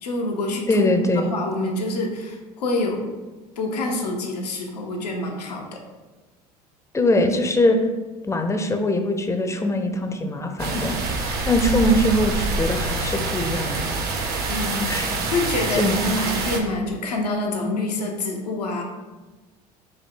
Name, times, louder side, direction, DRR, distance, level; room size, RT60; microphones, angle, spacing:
voice 1, 0.0-0.8 1.0-3.1 3.6-5.8 14.5-14.9 15.3-18.8, left 2 dB, 85° left, 1 dB, 0.8 m, -26 dB
voice 2, 0.7-1.3 6.9-7.8 8.2-10.9 11.5-13.9 14.2-14.4 14.9-15.1 15.7-16.0, left 1 dB, 15° left, 5 dB, 0.5 m, -22 dB
sound 1, 10.6-16.6, right 3 dB, 55° right, 0.8 m, -26 dB
5.3 x 2.2 x 3.7 m, 1.2 s
hypercardioid pair, 75°, 20 cm